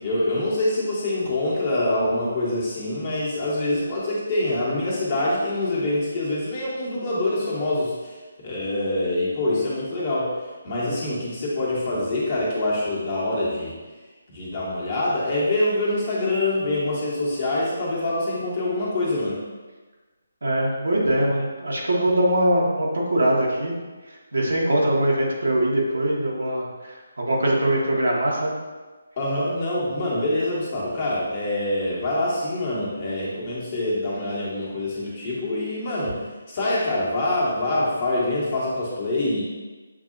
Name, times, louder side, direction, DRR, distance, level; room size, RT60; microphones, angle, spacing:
voice 1, 0.0-8.1 8.4-10.3 10.6-13.7 14.3-19.4 29.2-36.2 36.5-39.4, left 1 dB, 35° left, -6 dB, 1.5 m, -25 dB
voice 2, 20.4-23.7 24.3-28.5, right 1 dB, 65° right, -2 dB, 1.1 m, -22 dB
7.3 x 2.7 x 2.6 m, 1.3 s
figure-of-eight pair, 145°, 0 cm